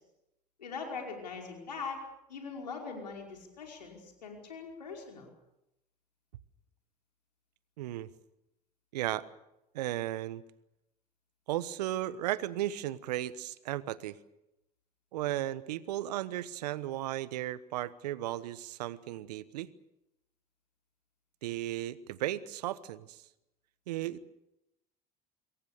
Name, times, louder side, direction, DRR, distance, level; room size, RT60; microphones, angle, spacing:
voice 1, 0.6-2.0 2.3-5.3, left 5 dB, 85° left, 1 dB, 5.2 m, -41 dB
voice 2, 7.8-8.1 8.9-9.2 9.7-10.4 11.5-14.2 15.1-19.7 21.4-23.2 23.9-24.2, right 14 dB, 75° right, 17 dB, 1.2 m, -35 dB
26.0 x 22.0 x 6.8 m, 0.88 s
hypercardioid pair, 65°, 21 cm